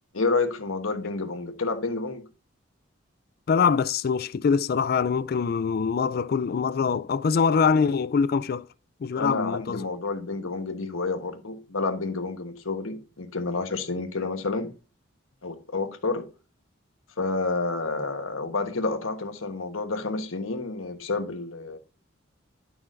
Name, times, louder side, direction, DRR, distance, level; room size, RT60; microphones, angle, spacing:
voice 1, 0.1-2.2 9.2-14.7 15.4-16.2 17.2-21.8, left 3 dB, 80° left, 1.2 m, -29 dB
voice 2, 3.5-8.7 9.0-9.9, left 6 dB, 45° left, 0.3 m, -24 dB
11.0 x 5.9 x 2.6 m
head